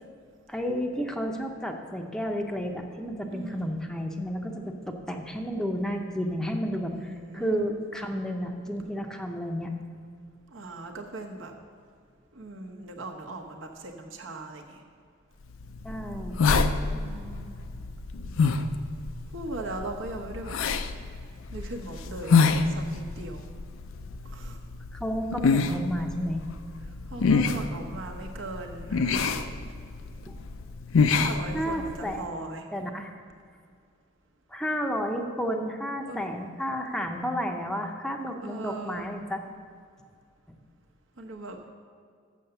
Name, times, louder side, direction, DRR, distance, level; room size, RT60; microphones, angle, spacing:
voice 1, 0.5-9.7 15.8-16.4 24.9-26.4 30.3-30.4 31.5-32.2 32.7-33.1 34.5-39.4, equal, 5° left, 3 dB, 0.6 m, -31 dB
voice 2, 3.3-3.8 6.8-7.6 10.5-11.5 12.3-14.8 16.7-17.5 19.3-20.6 21.5-23.4 24.2-24.6 27.1-29.7 31.1-32.7 36.0-36.3 38.4-39.1 41.2-41.6, right 2 dB, 70° right, 3 dB, 1.1 m, -39 dB
sound 1, 15.5-32.1, left 4 dB, 80° left, 0.5 m, -28 dB
7.2 x 6.9 x 6.7 m, 2.2 s
head